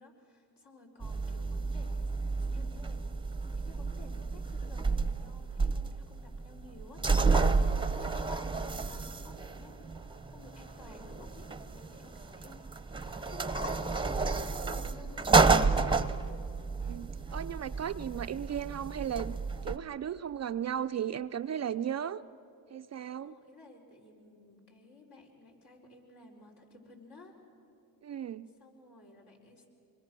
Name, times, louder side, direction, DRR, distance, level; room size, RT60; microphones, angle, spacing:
voice 1, 0.0-3.2 3.5-9.9 10.2-12.9 13.3-16.1 23.2-27.4 28.6-29.7, left 2 dB, 60° left, 0 dB, 4.6 m, -54 dB
sound 1, 1.0-19.8, right 4 dB, 10° right, 0.8 m, -31 dB
voice 2, 16.8-19.4 19.6-22.2 22.7-23.3 28.0-28.5, right 9 dB, 35° right, 11 dB, 0.5 m, -35 dB
26.0 x 22.5 x 6.2 m, 2.6 s
supercardioid pair, 70°, 45 cm